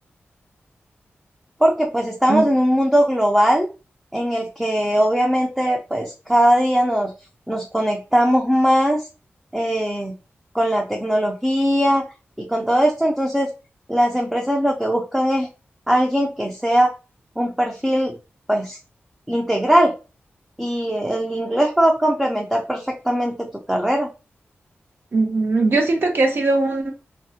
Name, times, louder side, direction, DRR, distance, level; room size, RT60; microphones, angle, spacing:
voice 1, 1.6-3.7 4.1-7.1 7.5-9.0 9.5-10.1 10.5-12.1 12.5-13.5 13.9-15.5 15.9-16.9 17.4-18.1 18.5-18.8 19.3-19.9 20.6-23.3 23.7-24.1, equal, 5° right, 0.4 m, -20 dB
voice 2, 25.1-26.9, right 3 dB, 60° right, 0.8 m, -19 dB
3.3 x 2.0 x 2.7 m
wide cardioid pair, 120°, 4 cm